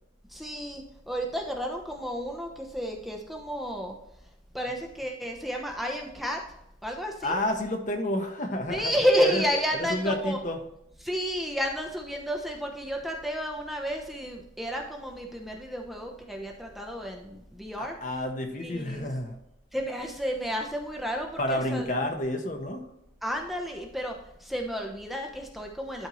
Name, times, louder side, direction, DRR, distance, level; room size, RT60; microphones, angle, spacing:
voice 1, 0.3-3.9 4.5-6.4 6.8-7.4 8.7-10.4 11.0-17.9 18.6-19.1 19.7-21.9 23.2-24.1 24.4-26.1, equal, ahead, 1 dB, 0.9 m, -31 dB
voice 2, 7.2-9.4 9.7-10.6 17.8-19.4 21.4-22.9, left 1 dB, 40° left, 4 dB, 1.2 m, -30 dB
12.5 x 4.5 x 3.1 m, 0.81 s
head